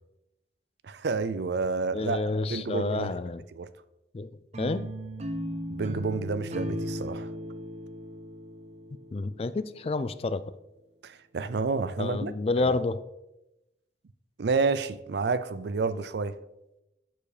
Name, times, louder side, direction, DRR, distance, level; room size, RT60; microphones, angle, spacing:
voice 1, 0.8-2.2 2.5-3.1 3.5-3.7 5.7-7.3 11.0-12.3 12.6-12.7 14.4-16.4, right 4 dB, 65° right, 0.5 m, -29 dB
voice 2, 1.9-3.4 4.1-4.3 4.6-4.9 9.1-10.4 12.0-13.0, left 3 dB, 30° left, 0.3 m, -29 dB
sound 1, 4.5-9.6, equal, 35° right, 0.7 m, -36 dB
7.4 x 6.8 x 4.9 m
head